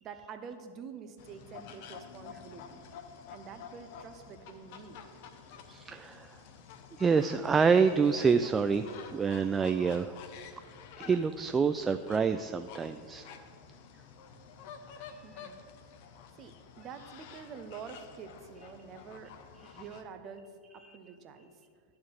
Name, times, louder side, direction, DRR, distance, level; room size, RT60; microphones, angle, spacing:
voice 1, 0.0-2.8 3.3-5.0 15.2-15.6 16.4-19.4 19.6-21.5, right 6 dB, 35° right, 8 dB, 0.8 m, -47 dB
sound 1, 1.2-20.0, left 7 dB, 50° left, 0.8 m, -50 dB
voice 2, 5.7-6.3 7.0-8.9 9.1-10.5 11.0-13.3 15.1-15.4 20.9-21.0, right 5 dB, 15° right, 8 dB, 0.3 m, -27 dB
12.0 x 4.3 x 7.6 m, 2.1 s
figure-of-eight pair, 90°, 0 cm